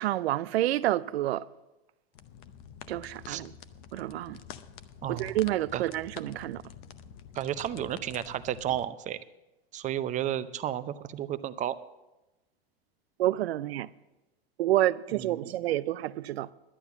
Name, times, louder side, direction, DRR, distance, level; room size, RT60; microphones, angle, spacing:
voice 1, 0.0-1.5 2.9-3.5 3.9-4.4 5.1-6.6 13.2-13.9 14.6-16.5, right 14 dB, 80° right, 0.5 m, -28 dB
sound 1, 2.1-8.9, left 8 dB, 50° left, 0.8 m, -48 dB
voice 2, 5.0-5.4 5.7-5.8 7.3-9.2 9.7-11.8 15.1-15.6, right 11 dB, 25° right, 0.6 m, -32 dB
11.0 x 9.1 x 7.1 m
hypercardioid pair, 115°, 31 cm